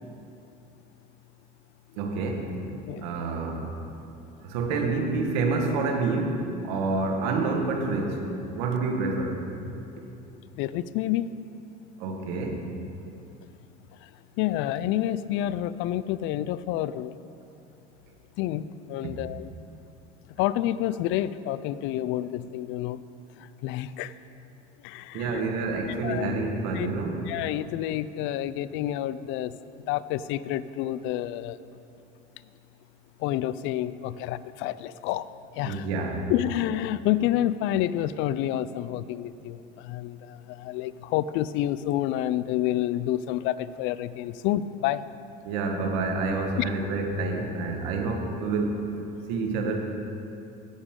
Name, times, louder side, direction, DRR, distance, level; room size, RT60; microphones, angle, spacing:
voice 1, 2.0-2.5 3.0-3.7 4.4-6.4 6.6-8.2 8.5-9.4 12.0-12.7 25.1-27.2 35.6-36.2 45.4-48.8 49.3-49.8, right 3 dB, 85° right, 2 dB, 1.6 m, -28 dB
voice 2, 10.6-11.3 14.4-17.1 18.4-19.5 20.4-23.0 23.6-24.1 24.8-25.4 26.0-26.3 26.7-26.9 27.3-29.5 29.9-31.6 33.2-35.2 35.6-35.8 36.3-40.2 40.5-45.0 46.6-46.7, left 13 dB, 65° left, 16 dB, 0.4 m, -28 dB
16.5 x 7.1 x 3.7 m, 2.7 s
supercardioid pair, 95°, 21 cm